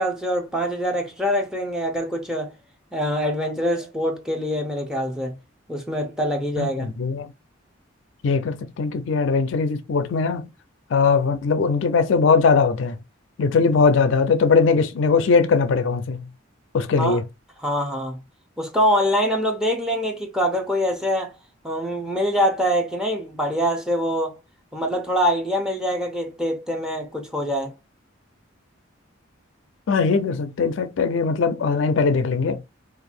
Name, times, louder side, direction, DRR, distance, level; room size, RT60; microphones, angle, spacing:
voice 1, 0.0-2.5 2.9-5.3 5.7-6.9 17.0-17.2 17.6-18.2 18.6-21.3 21.6-24.4 24.7-27.8, equal, 5° right, 0.6 m, -24 dB
voice 2, 6.6-7.3 8.2-10.5 10.9-13.0 13.4-16.3 16.7-17.2 29.9-32.6, left 4 dB, 65° left, 0.4 m, -20 dB
2.6 x 2.4 x 4.1 m
head